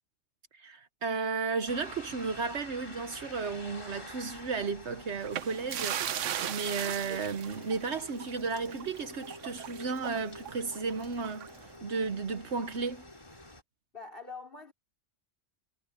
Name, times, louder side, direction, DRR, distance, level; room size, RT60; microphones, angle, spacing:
voice 1, 0.5-11.5 11.8-13.1, right 4 dB, 65° right, 1.3 m, -34 dB
sound 1, 1.7-13.6, left 1 dB, 25° left, 3.2 m, -48 dB
sound 2, 1.9-3.4 3.8-3.9 5.2-11.7, right 10 dB, 80° right, 1.1 m, -39 dB
voice 2, 13.9-14.7, left 4 dB, 45° left, 4.6 m, -44 dB
omnidirectional pair, 1.3 m